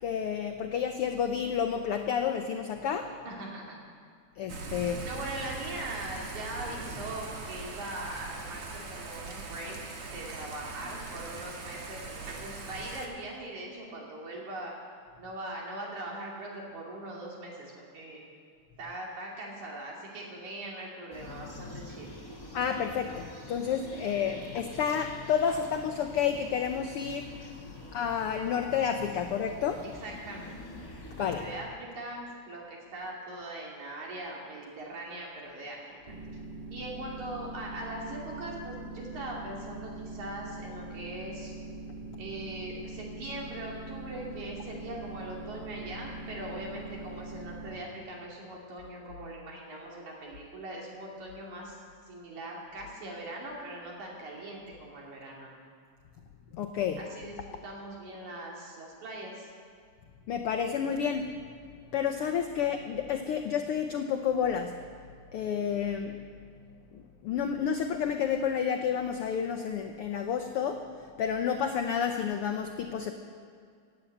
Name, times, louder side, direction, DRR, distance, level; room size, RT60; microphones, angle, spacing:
voice 1, 0.0-3.1 4.4-5.0 22.5-27.3 27.9-29.8 31.2-31.5 56.5-57.0 60.3-61.3 61.9-64.8 65.3-66.2 67.2-70.8 71.2-73.1, left 7 dB, 85° left, 5 dB, 1.2 m, -30 dB
voice 2, 3.3-3.8 5.0-14.7 15.2-18.3 18.8-22.1 27.7-27.9 30.0-30.7 31.2-32.2 32.5-35.8 36.7-41.5 42.2-51.8 52.1-55.5 57.0-57.4 57.6-59.5, right 1 dB, 70° right, -2 dB, 4.2 m, -41 dB
Thunder / Rain, 4.5-13.1, right 3 dB, 55° right, 2.3 m, -41 dB
sound 1, 21.1-31.5, left 1 dB, 20° left, 0.5 m, -46 dB
sound 2, 36.1-47.7, right 2 dB, 35° right, 0.7 m, -42 dB
18.0 x 8.7 x 7.9 m, 2.2 s
omnidirectional pair, 3.5 m